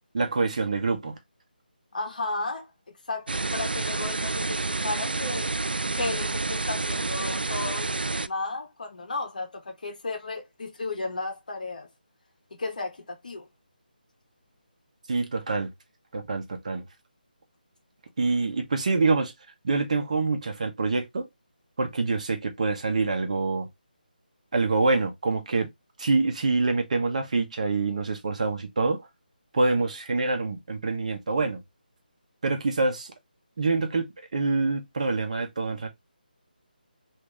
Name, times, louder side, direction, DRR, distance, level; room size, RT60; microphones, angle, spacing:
voice 1, 0.1-1.2 15.1-15.7 16.1-16.8 18.2-19.3 19.6-21.3 21.8-23.7 24.5-25.7 26.0-29.0 29.5-31.6 32.4-33.1 33.6-35.9, right 3 dB, 45° right, 0.9 m, -26 dB
voice 2, 1.9-5.5 5.9-11.9 12.6-13.5, left 3 dB, 55° left, 1.1 m, -34 dB
sound 1, 3.3-8.3, right 3 dB, 75° right, 0.3 m, -29 dB
3.0 x 2.7 x 3.5 m
figure-of-eight pair, 155°, 5 cm